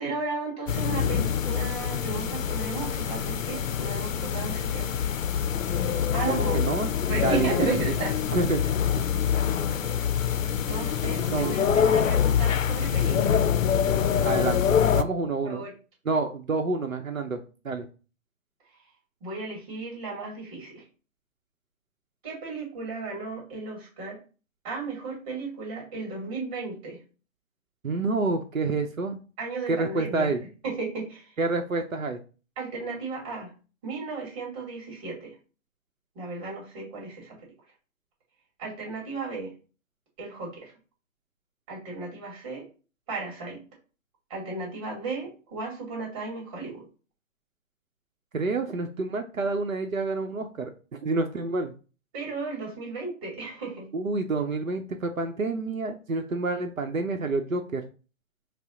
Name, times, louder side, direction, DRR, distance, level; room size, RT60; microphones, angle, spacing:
voice 1, 0.0-4.9 6.1-6.6 7.1-8.2 10.7-13.5 15.4-15.7 19.2-20.8 22.2-24.2 24.6-27.0 29.4-30.4 30.6-31.3 32.6-33.5 33.8-35.3 36.1-37.4 38.6-39.5 40.2-40.7 41.7-42.6 43.1-43.6 44.3-46.8 52.1-53.9, right 4 dB, 30° right, -2 dB, 2.3 m, -34 dB
sound 1, 0.7-15.0, left 8 dB, 80° left, 0.5 m, -25 dB
voice 2, 6.3-8.0 8.3-8.6 11.3-11.6 14.2-15.6 16.1-17.9 27.8-29.2 29.7-30.4 31.4-32.2 48.3-50.7 51.0-51.7 53.9-57.8, right 3 dB, 90° right, 5 dB, 0.7 m, -28 dB
5.4 x 2.0 x 3.7 m, 0.36 s
figure-of-eight pair, 135°, 39 cm